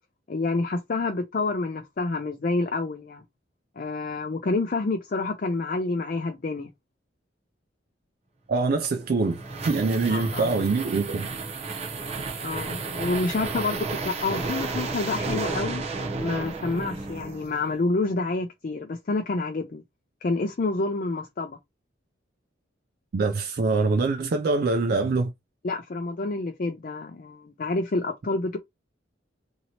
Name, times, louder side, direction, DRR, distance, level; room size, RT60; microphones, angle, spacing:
voice 1, 0.3-3.2 3.8-6.7 10.1-10.5 12.4-15.8 16.2-19.8 20.2-21.6 25.6-28.6, left 3 dB, 45° left, 0.4 m, -28 dB
voice 2, 8.5-11.3 23.1-25.3, right 3 dB, 50° right, 0.3 m, -24 dB
sound 1, 8.9-17.7, right 3 dB, 35° right, 0.7 m, -32 dB
2.9 x 2.8 x 2.8 m
head